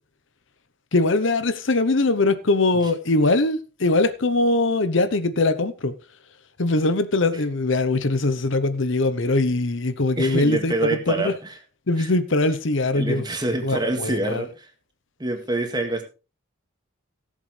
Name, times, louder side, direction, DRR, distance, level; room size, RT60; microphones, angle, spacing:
voice 1, 0.9-5.9 6.6-11.3 11.9-13.2 13.6-14.4, left 2 dB, 60° left, 0.9 m, -21 dB
voice 2, 10.2-11.6 12.0-12.1 12.9-14.7 15.2-16.0, right 2 dB, 20° right, 2.0 m, -26 dB
17.5 x 7.4 x 3.3 m
head